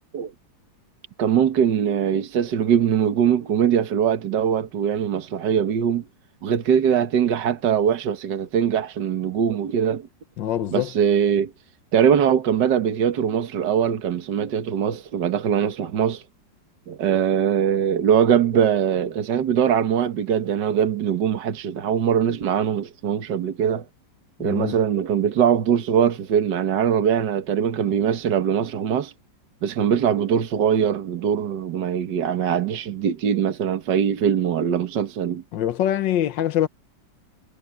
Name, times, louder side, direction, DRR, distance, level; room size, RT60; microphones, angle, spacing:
voice 1, 1.2-6.0 6.4-10.1 10.7-11.5 11.9-16.2 16.9-23.9 24.4-29.1 29.6-35.4, right 8 dB, 65° right, 1.9 m, -22 dB
voice 2, 10.4-10.9 24.4-24.8 35.5-36.7, left 11 dB, 75° left, 1.6 m, -23 dB
omnidirectional pair, 2.0 m